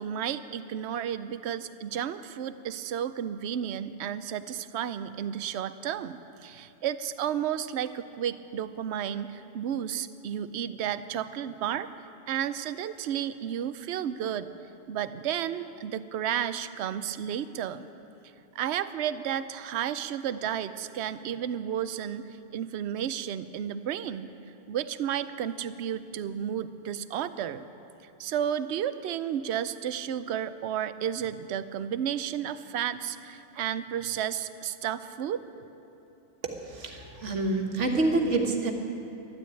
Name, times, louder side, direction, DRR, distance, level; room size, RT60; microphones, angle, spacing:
voice 1, 0.0-11.9 12.3-14.5 14.9-17.8 18.5-24.3 24.7-27.6 28.2-35.4, right 9 dB, 70° right, 13 dB, 0.9 m, -32 dB
voice 2, 36.7-38.7, right 2 dB, 90° right, 3 dB, 1.8 m, -27 dB
12.5 x 12.0 x 8.9 m, 3.0 s
omnidirectional pair, 1.2 m